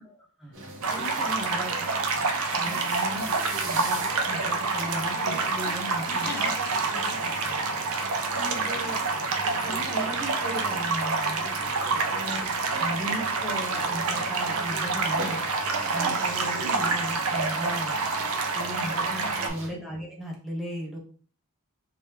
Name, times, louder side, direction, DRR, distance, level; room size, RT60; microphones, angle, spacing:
voice 1, 0.0-0.6 0.9-1.9 2.5-3.3 3.6-6.3 8.3-9.1 9.4-11.4 12.1-15.4 15.9-17.9 18.5-21.0, equal, ahead, -3 dB, 0.8 m, -36 dB
sound 1, 0.5-19.7, right 1 dB, 55° right, 1.0 m, -40 dB
sound 2, 0.8-19.5, right 4 dB, 75° right, 0.6 m, -28 dB
voice 2, 6.1-7.6 8.3-8.6 11.9-12.1 18.7-18.9 19.2-19.6, left 3 dB, 45° left, 2 dB, 0.6 m, -41 dB
3.2 x 2.8 x 3.3 m, 0.42 s
head